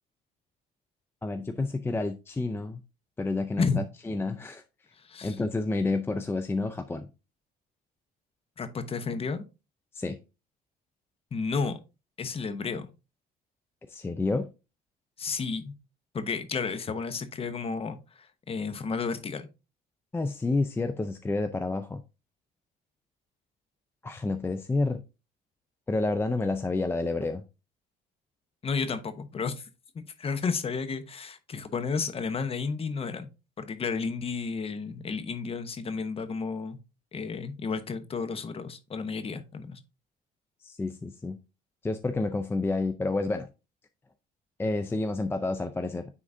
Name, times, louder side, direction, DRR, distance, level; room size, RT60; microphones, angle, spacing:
voice 1, 1.2-2.8 3.2-3.7 4.1-4.6 5.2-7.1 9.9-10.2 13.9-14.5 20.1-22.0 24.0-25.0 25.9-27.4 40.6-41.4 41.8-43.5 44.6-46.1, left 3 dB, 15° left, 0.4 m, -29 dB
voice 2, 5.0-5.4 8.6-9.4 11.3-11.8 12.2-12.9 15.2-15.7 16.1-19.5 28.6-29.7 30.2-33.3 33.6-36.8 37.1-39.8, left 5 dB, 35° left, 0.9 m, -32 dB
9.6 x 3.8 x 2.6 m
cardioid pair, 110°, 17 cm